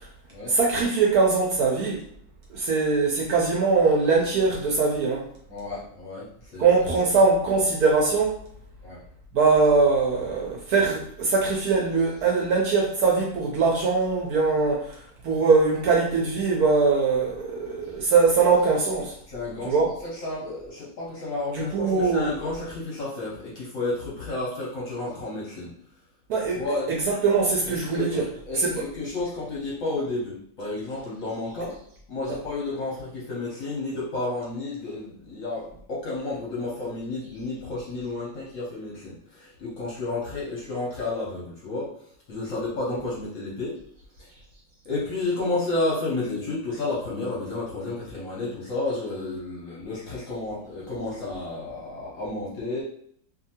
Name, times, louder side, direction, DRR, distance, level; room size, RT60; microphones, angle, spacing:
voice 1, 0.5-2.0 2.5-5.2 6.6-8.3 9.3-15.0 15.2-19.1 19.7-19.9 21.5-22.3 26.3-26.6 27.1-28.2 28.6-28.8, right 4 dB, 70° right, -2 dB, 0.9 m, -22 dB
voice 2, 5.5-6.7 8.8-9.0 19.3-25.7 26.4-26.9 27.7-31.8 32.1-41.9 42.3-43.8 44.2-44.3 44.8-52.8, left 2 dB, 60° left, -6 dB, 0.9 m, -31 dB
2.6 x 2.6 x 2.7 m, 0.66 s
omnidirectional pair, 2.0 m